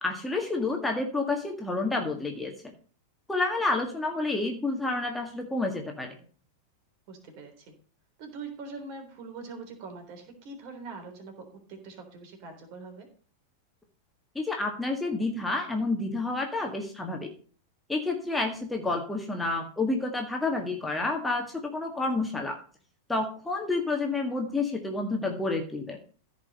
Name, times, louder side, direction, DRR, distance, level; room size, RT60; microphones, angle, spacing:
voice 1, 0.0-2.7 3.3-6.2 14.4-17.3 17.9-22.6 23.1-26.0, left 3 dB, 5° left, 2 dB, 1.8 m, -29 dB
voice 2, 7.1-7.7 8.2-13.1, right 4 dB, 45° right, 4 dB, 3.7 m, -43 dB
15.0 x 5.2 x 5.2 m, 0.41 s
figure-of-eight pair, 90°, 0 cm